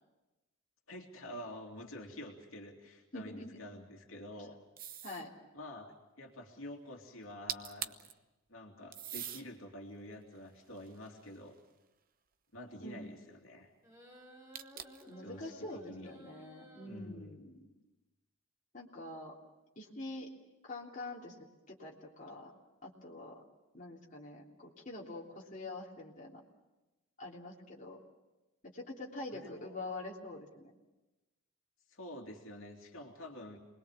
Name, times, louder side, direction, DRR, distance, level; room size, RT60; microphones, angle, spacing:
voice 1, 0.9-4.6 5.5-8.0 8.5-11.6 12.5-13.7 15.2-16.1 16.8-17.4 29.3-29.7 31.9-33.6, left 1 dB, 70° left, 1 dB, 2.8 m, -48 dB
voice 2, 3.1-3.6 5.0-5.3 12.8-13.0 15.1-17.6 18.7-19.3 19.7-20.3 20.6-22.5 22.8-23.4 23.7-26.4 27.2-28.0 28.6-30.7, left 2 dB, 35° left, -3 dB, 3.3 m, -45 dB
sound 1, 4.8-5.3 7.2-7.3 7.5-8.1 8.9-9.5 10.1-11.6 14.5-15.1, right 10 dB, 40° right, 0.9 m, -43 dB
sound 2, 13.8-16.9, equal, 15° right, 4.6 m, -56 dB
27.5 x 21.0 x 7.3 m, 1.1 s
head